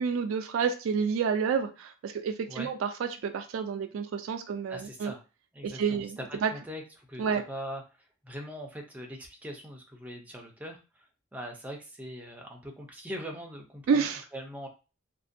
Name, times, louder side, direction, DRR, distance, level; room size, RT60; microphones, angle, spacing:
voice 1, 0.0-5.1 5.6-6.5 7.2-7.4 13.9-14.2, right 6 dB, 85° right, 6 dB, 0.3 m, -29 dB
voice 2, 4.7-5.2 5.5-6.2 6.5-7.8 8.2-10.8 11.3-14.7, equal, 5° right, 2 dB, 0.4 m, -41 dB
2.5 x 2.1 x 2.5 m, 0.31 s
head